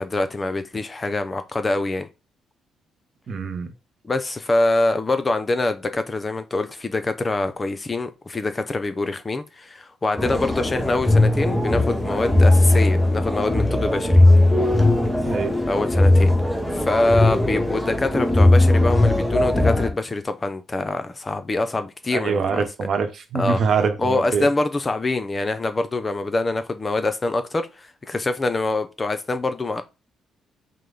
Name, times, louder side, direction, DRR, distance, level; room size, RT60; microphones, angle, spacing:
voice 1, 0.0-2.1 4.0-14.2 15.7-16.3 16.7-22.7 23.3-23.6 24.0-29.8, left 2 dB, 25° left, 0.6 m, -24 dB
voice 2, 3.3-3.7 15.2-15.5 22.1-24.5, right 5 dB, 55° right, 0.9 m, -24 dB
sound 1, 10.2-19.9, left 1 dB, 5° left, 1.1 m, -18 dB
5.2 x 2.1 x 3.9 m
cardioid pair, 90°, 0 cm